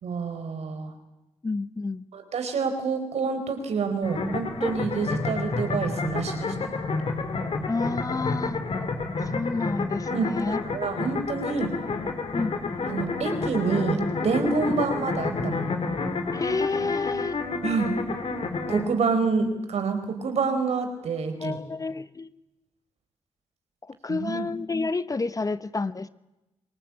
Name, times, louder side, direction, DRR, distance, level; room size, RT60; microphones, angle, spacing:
voice 1, 0.0-0.9 2.1-6.5 10.1-11.7 12.8-15.7 17.6-17.9 18.7-21.6 24.1-24.5, right 4 dB, 70° right, 7 dB, 4.6 m, -27 dB
voice 2, 1.4-2.0 7.7-8.6 9.2-10.6 12.3-12.9 16.3-17.4 21.4-22.3 23.8-26.1, left 3 dB, 30° left, 14 dB, 1.1 m, -30 dB
sound 1, 4.0-18.8, left 3 dB, 55° left, 3.8 m, -30 dB
28.5 x 19.0 x 8.7 m, 0.98 s
supercardioid pair, 55°, 12 cm